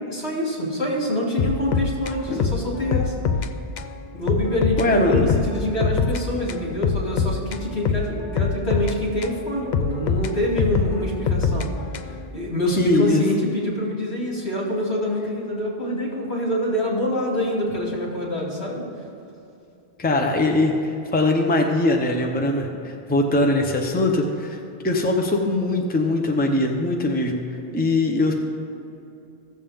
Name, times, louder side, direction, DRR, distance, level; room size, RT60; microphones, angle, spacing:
voice 1, 0.1-3.1 4.1-11.7 12.3-18.9, equal, 80° left, -5 dB, 2.9 m, -25 dB
sound 1, 1.4-3.5 3.8-3.9 4.3-6.2 6.5-9.4 9.7-12.3, left 6 dB, 55° left, 0.5 m, -24 dB
voice 2, 4.8-5.3 12.8-13.2 20.0-20.7 21.1-24.6 24.8-27.4 27.7-28.3, left 2 dB, 10° left, 2 dB, 0.7 m, -21 dB
16.0 x 7.2 x 3.6 m, 2.7 s
omnidirectional pair, 1.1 m